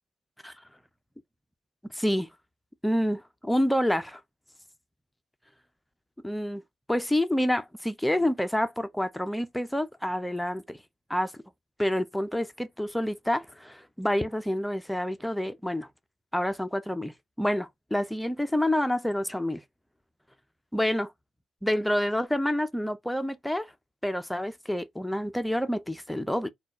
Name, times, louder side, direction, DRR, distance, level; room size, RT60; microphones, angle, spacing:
voice 1, 1.9-2.3 2.8-3.2 3.4-4.2 6.2-6.6 6.9-10.8 11.1-11.3 11.8-15.9 16.3-19.6 20.7-21.1 21.6-23.7 24.0-26.5, left 1 dB, 5° left, 0.4 m, -28 dB
4.3 x 2.2 x 4.0 m
cardioid pair, 90°, 0 cm